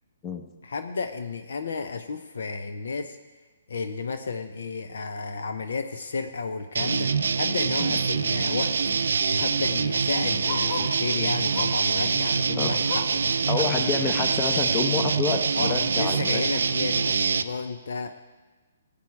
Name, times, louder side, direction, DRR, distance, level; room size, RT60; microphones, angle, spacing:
voice 1, 0.6-3.2 3.7-8.7 9.3-13.9 15.6-18.1, left 4 dB, 65° left, 8 dB, 0.8 m, -32 dB
sound 1, 6.7-17.4, right 5 dB, 65° right, 0.5 m, -25 dB
Bark, 10.4-11.0 11.5-11.9 12.3-13.3 13.7-13.8 14.2-14.3 15.0-15.1, left 5 dB, 45° left, 1.7 m, -38 dB
voice 2, 13.5-16.4, left 5 dB, 25° left, 5 dB, 1.2 m, -28 dB
17.0 x 8.8 x 4.7 m, 1.3 s
figure-of-eight pair, 130°, 0 cm